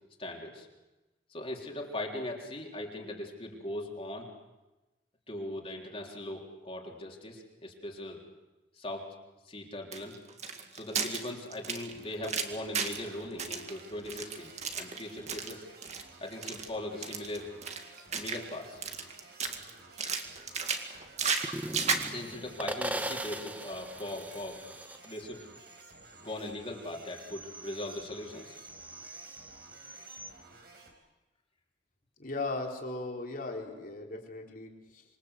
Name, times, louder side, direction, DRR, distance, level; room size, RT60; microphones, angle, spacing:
voice 1, 0.2-0.7 1.3-4.3 5.3-8.2 8.8-9.1 9.5-10.2 10.7-15.7 16.2-17.6 18.1-18.8 22.0-24.6 25.0-25.5 26.2-28.6, left 1 dB, 30° left, 0 dB, 3.7 m, -40 dB
sound 1, 9.9-13.1 13.4-15.5 15.8-16.0 16.3-16.7 17.0-18.5 18.8-19.7 20.0-22.1, right 5 dB, 40° right, 2.2 m, -34 dB
sound 2, 11.9-30.9, right 3 dB, 60° right, 4.9 m, -55 dB
sound 3, 21.4-26.6 26.9-30.3, right 1 dB, 10° right, 1.2 m, -41 dB
voice 2, 32.2-35.0, left 2 dB, 50° left, 1 dB, 4.0 m, -37 dB
27.0 x 23.0 x 8.2 m, 1.1 s
head